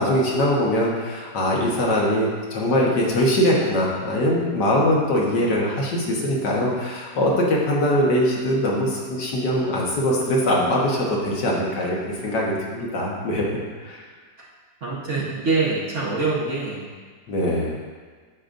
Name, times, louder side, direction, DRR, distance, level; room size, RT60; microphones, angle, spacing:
voice 1, 0.0-12.0 12.2-14.0 17.3-17.8, equal, 70° left, -3 dB, 1.8 m, -22 dB
voice 2, 14.8-16.9, right 3 dB, 45° right, -6 dB, 1.4 m, -24 dB
9.0 x 6.8 x 2.6 m, 1.5 s
omnidirectional pair, 2.0 m